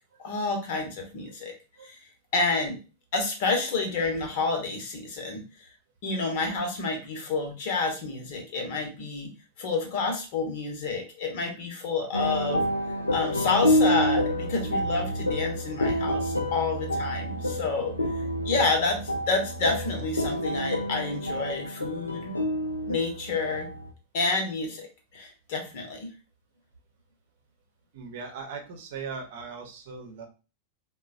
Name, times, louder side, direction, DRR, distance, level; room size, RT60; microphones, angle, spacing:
voice 1, 0.2-1.5 1.8-2.0 2.3-2.8 3.1-5.4 6.0-9.3 9.6-12.6 13.1-17.9 18.4-19.0 19.3-22.3 22.9-23.7 24.1-24.9 25.1-26.1, left 3 dB, 50° left, 3 dB, 0.9 m, -29 dB
sound 1, 12.1-23.9, equal, 80° left, 0.4 m, -28 dB
voice 2, 27.9-30.2, right 5 dB, 55° right, 4 dB, 0.8 m, -39 dB
3.7 x 2.2 x 2.5 m, 0.32 s
figure-of-eight pair, 90°, 0 cm